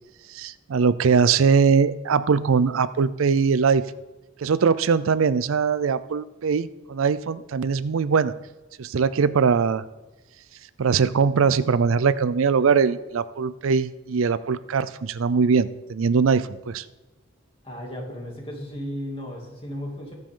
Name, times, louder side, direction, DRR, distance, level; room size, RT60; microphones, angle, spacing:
voice 1, 0.3-3.8 4.4-8.3 8.8-9.8 10.8-16.8, right 5 dB, 75° right, 15 dB, 0.5 m, -21 dB
voice 2, 17.6-20.1, equal, 25° left, -1 dB, 2.6 m, -34 dB
22.0 x 7.6 x 3.8 m, 1.1 s
head